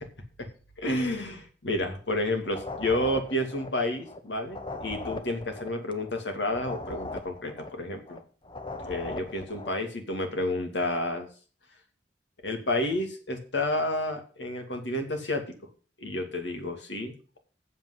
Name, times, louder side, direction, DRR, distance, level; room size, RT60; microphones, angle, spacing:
voice 1, 0.8-8.2 8.8-11.3 12.4-15.4 16.0-17.4, left 1 dB, 80° left, 5 dB, 2.5 m, -30 dB
sound 1, 2.4-9.8, left 2 dB, 30° left, 1.1 m, -39 dB
8.0 x 7.2 x 7.9 m, 0.38 s
head